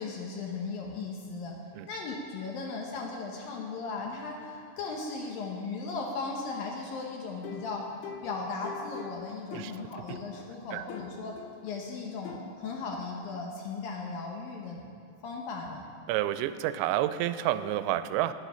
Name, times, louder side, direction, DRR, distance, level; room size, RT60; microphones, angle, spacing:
voice 1, 0.0-1.6 1.9-7.8 8.2-11.4 11.6-14.9 15.2-15.8, left 4 dB, 70° left, 0 dB, 2.4 m, -37 dB
sound 1, 7.4-10.5 10.9-11.7 12.3-12.5, left 8 dB, 90° left, 3.1 m, -44 dB
voice 2, 9.5-10.2 10.7-10.9 16.1-18.3, right 13 dB, 85° right, 12 dB, 2.8 m, -30 dB
19.0 x 7.7 x 5.7 m, 2.4 s
omnidirectional pair, 5.1 m